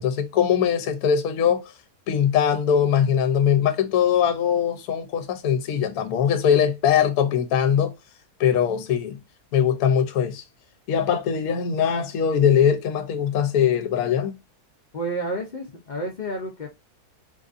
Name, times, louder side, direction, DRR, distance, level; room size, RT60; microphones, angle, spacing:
voice 1, 0.0-1.7 2.1-7.9 8.4-9.2 9.5-10.4 10.9-14.4, left 8 dB, 75° left, 1.1 m, -21 dB
voice 2, 14.9-16.7, right 1 dB, 55° left, 0.5 m, -30 dB
3.8 x 2.6 x 2.4 m
omnidirectional pair, 1.6 m